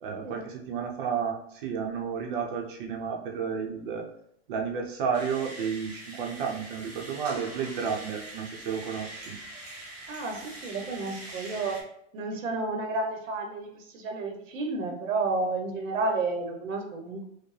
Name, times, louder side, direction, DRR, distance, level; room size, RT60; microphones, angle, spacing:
voice 1, 0.0-4.0 4.5-9.3, right 6 dB, 40° right, 1 dB, 0.7 m, -32 dB
sound 1, 5.1-11.8, right 1 dB, 15° right, 0.4 m, -43 dB
voice 2, 10.1-11.8 12.1-17.2, right 3 dB, 80° right, 4 dB, 0.9 m, -31 dB
4.7 x 2.2 x 3.2 m, 0.71 s
hypercardioid pair, 160°, 39 cm